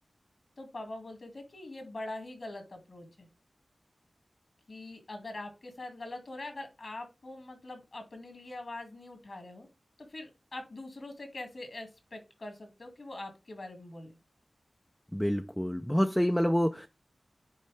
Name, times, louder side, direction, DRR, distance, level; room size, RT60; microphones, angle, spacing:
voice 1, 0.6-3.3 4.7-9.7 10.0-14.1, left 2 dB, 65° left, 6 dB, 2.2 m, -43 dB
voice 2, 15.1-16.9, equal, 5° left, 5 dB, 0.6 m, -27 dB
9.5 x 4.4 x 3.4 m, 0.26 s
cardioid pair, 40°, 0 cm